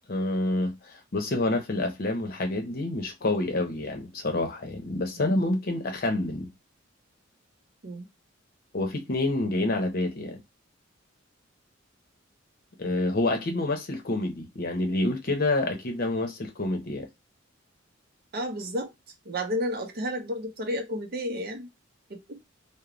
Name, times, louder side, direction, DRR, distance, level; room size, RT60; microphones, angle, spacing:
voice 1, 0.1-6.5 8.7-10.4 12.8-17.1, left 2 dB, 50° left, 0.7 m, -28 dB
voice 2, 18.3-18.9 19.3-21.7 22.1-22.4, equal, 50° right, 0.5 m, -32 dB
3.0 x 2.0 x 2.4 m
head